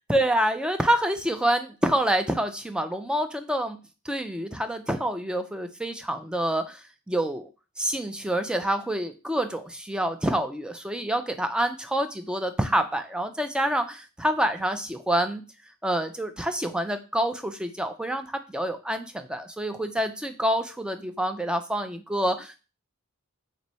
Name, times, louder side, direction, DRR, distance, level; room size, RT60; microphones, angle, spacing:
voice 1, 0.0-3.8 4.0-7.5 7.8-15.4 15.8-22.6, right 1 dB, 5° right, 7 dB, 0.3 m, -27 dB
3.1 x 2.6 x 4.1 m, 0.32 s
head